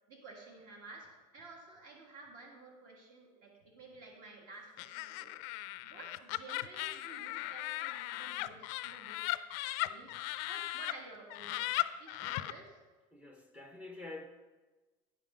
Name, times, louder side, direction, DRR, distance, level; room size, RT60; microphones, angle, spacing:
voice 1, 0.1-5.3 5.8-9.3 9.6-10.2 10.5-12.7, right 3 dB, 50° right, 0 dB, 1.8 m, -52 dB
Laughter, 4.8-10.9 11.3-12.5, left 18 dB, 65° left, 0.4 m, -37 dB
voice 2, 13.1-14.2, left 2 dB, 10° right, 3 dB, 0.6 m, -48 dB
9.7 x 5.7 x 5.0 m, 1.2 s
cardioid pair, 160°, 17 cm